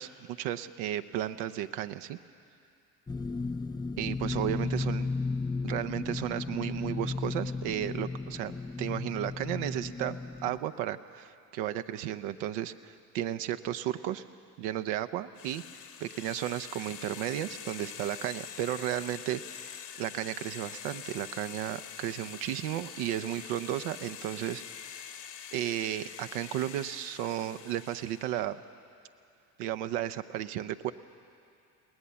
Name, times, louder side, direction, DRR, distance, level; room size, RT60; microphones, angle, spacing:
voice 1, 0.0-2.2 4.0-5.1 5.6-8.5 8.8-14.2 14.6-25.2 25.5-28.6 29.6-30.9, right 12 dB, 75° right, 10 dB, 0.8 m, -34 dB
sound 1, 3.1-10.6, left 3 dB, 10° left, 0.5 m, -34 dB
sound 2, 15.3-28.4, left 9 dB, 60° left, 1.6 m, -45 dB
22.0 x 18.0 x 6.9 m, 2.5 s
hypercardioid pair, 55°, 47 cm